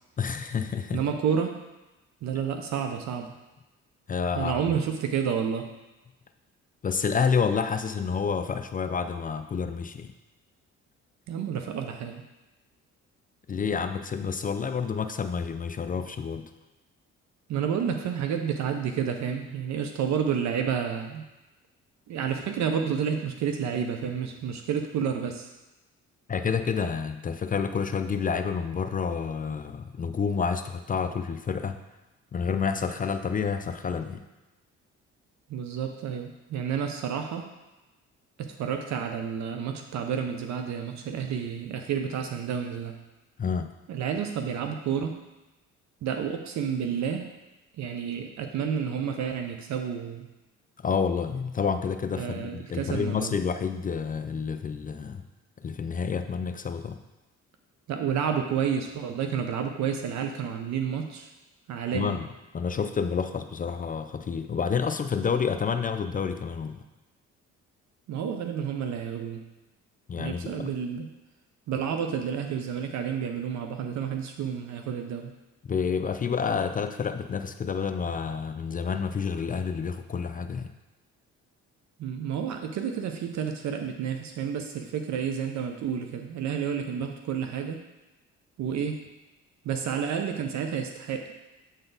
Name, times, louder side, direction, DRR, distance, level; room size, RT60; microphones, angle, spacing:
voice 1, 0.2-1.0 4.1-4.6 6.8-10.1 13.5-16.5 26.3-31.8 32.3-34.2 43.4-43.7 50.8-55.2 55.6-57.0 61.9-62.3 62.5-66.8 70.1-70.7 75.7-80.7, left 6 dB, 30° left, 9 dB, 0.3 m, -29 dB
voice 2, 0.9-1.6 2.2-3.3 4.3-5.7 11.3-12.2 17.5-21.2 22.1-25.5 35.5-37.5 38.4-43.0 43.9-45.2 46.0-47.3 47.8-50.3 52.2-53.3 57.9-61.3 61.7-62.1 68.1-69.4 70.2-71.1 71.7-75.3 82.0-87.8 88.6-89.1 89.6-91.3, right 7 dB, 65° right, 5 dB, 0.6 m, -30 dB
7.9 x 4.0 x 3.9 m, 1.1 s
cardioid pair, 90°, 30 cm